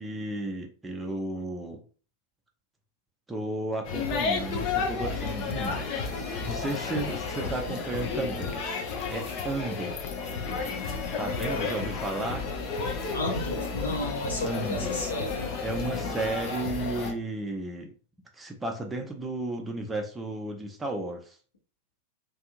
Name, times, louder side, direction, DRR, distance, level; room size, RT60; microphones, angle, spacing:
voice 1, 0.0-1.8 3.3-6.0 6.4-8.7 9.1-10.0 10.3-10.8 11.2-12.5 14.4-15.0 15.6-17.9 18.3-21.4, right 2 dB, 10° right, 2 dB, 0.5 m, -33 dB
sound 1, 3.9-17.1, left 4 dB, 40° left, 0.6 m, -32 dB
voice 2, 13.1-15.4, left 1 dB, 70° left, -1 dB, 1.1 m, -32 dB
2.6 x 2.6 x 2.4 m, 0.38 s
figure-of-eight pair, 90°, 0 cm